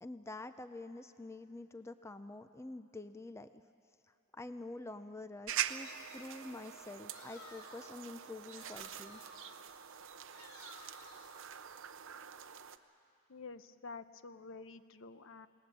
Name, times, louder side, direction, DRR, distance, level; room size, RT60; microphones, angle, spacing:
voice 1, 0.0-3.6 4.3-9.2, left 2 dB, 15° left, 10 dB, 0.5 m, -47 dB
sound 1, 5.5-12.8, right 10 dB, 60° right, 0.7 m, -44 dB
sound 2, 7.1-8.0 8.5-9.7 10.3-11.4, left 2 dB, 80° left, 3.1 m, -56 dB
voice 2, 13.3-15.5, left 4 dB, 60° left, 12 dB, 0.8 m, -49 dB
28.0 x 19.0 x 7.5 m, 2.4 s
head